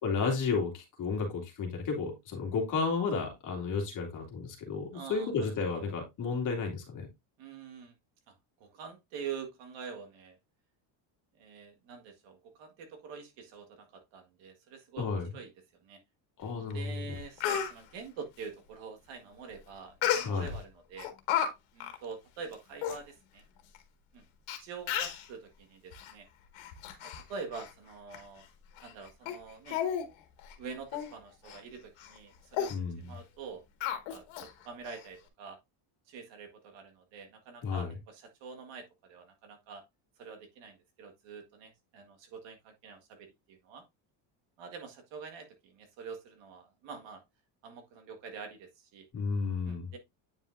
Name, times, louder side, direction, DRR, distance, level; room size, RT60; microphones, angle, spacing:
voice 1, 0.0-7.1 15.0-15.3 16.4-16.8 20.2-20.5 32.7-33.0 37.6-37.9 49.1-49.9, left 4 dB, 40° left, 2.5 m, -32 dB
voice 2, 4.9-5.5 5.7-5.8 7.4-7.9 8.3-8.4 8.6-10.4 11.4-15.1 15.3-15.5 15.8-16.0 16.7-21.1 21.7-23.4 24.1-24.2 24.6-26.3 27.0-28.5 28.8-29.8 30.6-33.6 33.9-35.6 36.1-39.8 40.2-43.8 44.6-47.2 47.6-49.1 49.6-50.0, right 5 dB, 65° right, 1.9 m, -46 dB
Speech, 16.7-16.8 17.1-17.7 20.0-20.6 21.0-21.5 21.8-22.0 22.5-22.6 22.8-23.0 23.7-23.8 24.5-24.6 24.9-25.3 25.9-26.1 26.6-27.2 27.5-27.7 28.1-28.2 28.8-28.9 29.3-29.4 29.7-30.1 30.4-30.5 30.9-31.1 31.5-31.6 32.0-32.2 32.5-32.7 33.8-34.5 34.9-35.0, left 9 dB, 70° left, 1.9 m, -32 dB
9.1 x 5.4 x 2.6 m
cardioid pair, 175°, 48 cm